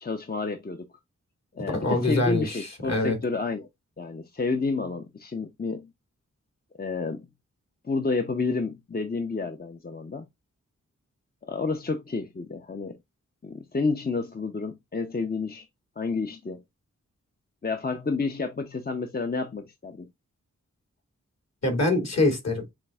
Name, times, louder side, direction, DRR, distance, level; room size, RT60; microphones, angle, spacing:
voice 1, 0.0-0.9 1.5-3.7 4.0-5.9 6.8-7.3 7.8-10.3 11.4-13.0 13.4-15.7 16.0-16.6 17.6-20.1, left 4 dB, 30° left, 0.7 m, -30 dB
voice 2, 1.7-3.2 21.6-22.6, left 2 dB, 55° left, 2.4 m, -24 dB
7.3 x 2.6 x 2.3 m
cardioid pair, 45°, 31 cm